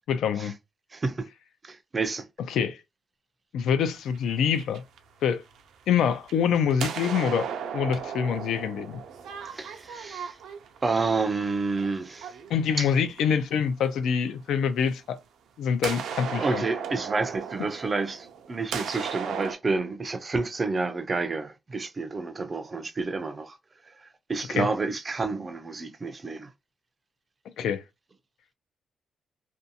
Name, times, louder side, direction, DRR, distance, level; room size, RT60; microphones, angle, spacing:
voice 1, 0.1-0.5 2.5-2.8 3.5-4.8 5.2-5.4 5.9-7.5 7.7-9.0 12.5-15.2 15.6-16.6 24.5-24.7 27.6-27.8, left 7 dB, 85° left, 0.4 m, -25 dB
voice 2, 0.9-1.3 1.6-2.2 9.4-10.4 10.8-12.3 12.8-12.9 16.4-23.6 24.3-26.5, right 3 dB, 25° right, 0.4 m, -29 dB
sound 1, 4.0-5.7 6.1-13.4 14.9-15.0 15.8-19.5, right 7 dB, 85° right, 0.5 m, -36 dB
2.6 x 2.2 x 2.7 m
cardioid pair, 150°, 0 cm